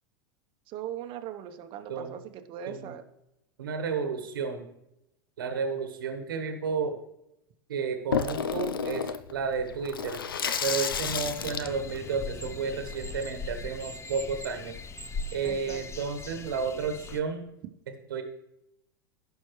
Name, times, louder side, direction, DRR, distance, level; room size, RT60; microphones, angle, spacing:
voice 1, 0.7-3.0 15.4-15.9, right 10 dB, 45° right, 6 dB, 0.9 m, -39 dB
voice 2, 3.6-4.7 5.4-7.0 7.7-10.2 10.6-14.8 15.3-17.5 18.1-18.2, right 5 dB, 80° right, 7 dB, 1.3 m, -32 dB
Water tap faucet / Sink (filling or washing), 8.1-13.3, left 7 dB, 85° left, 0.5 m, -32 dB
sound 1, 10.9-17.2, left 4 dB, 25° left, 0.6 m, -40 dB
sound 2, 11.4-12.5 12.9-15.6 16.4-16.5, right 2 dB, 10° right, 1.0 m, -47 dB
16.5 x 5.5 x 3.1 m, 0.84 s
hypercardioid pair, 90°, 11 cm